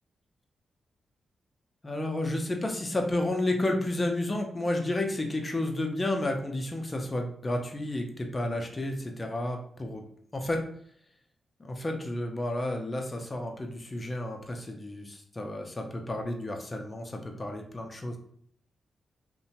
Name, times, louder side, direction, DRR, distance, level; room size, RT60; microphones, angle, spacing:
voice 1, 1.8-10.0 10.3-10.6 11.6-18.2, left 1 dB, 25° left, 3 dB, 0.5 m, -31 dB
2.8 x 2.2 x 2.7 m, 0.63 s
cardioid pair, 80°, 0 cm